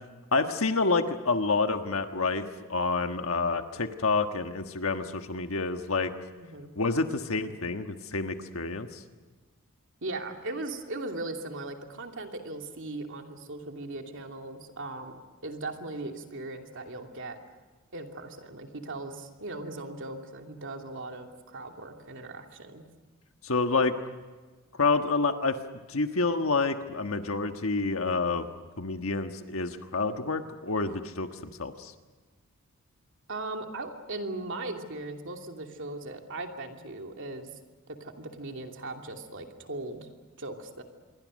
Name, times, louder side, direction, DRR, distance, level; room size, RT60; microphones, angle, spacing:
voice 1, 0.3-6.1 6.8-9.0 23.4-24.0 24.8-25.6 25.9-28.5 28.8-31.9, left 3 dB, 70° left, 6 dB, 1.4 m, -28 dB
voice 2, 6.4-6.7 10.0-17.4 17.9-22.8 33.3-37.5 37.9-40.1 40.4-40.8, right 2 dB, 60° right, 4 dB, 2.8 m, -38 dB
27.0 x 23.5 x 6.5 m, 1.3 s
head